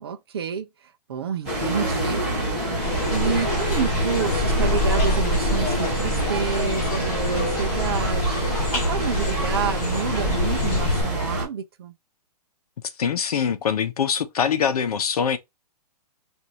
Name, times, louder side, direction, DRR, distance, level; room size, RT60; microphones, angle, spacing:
voice 1, 0.0-2.6 3.1-8.4 8.7-11.9, right 7 dB, 40° right, 0.5 m, -29 dB
sound 1, 1.4-11.4, right 1 dB, ahead, 2.4 m, -26 dB
sound 2, 2.8-11.0, left 1 dB, 30° left, 2.2 m, -26 dB
voice 2, 13.0-15.4, left 7 dB, 65° left, 0.8 m, -23 dB
5.0 x 2.6 x 2.9 m
hypercardioid pair, 175°, 21 cm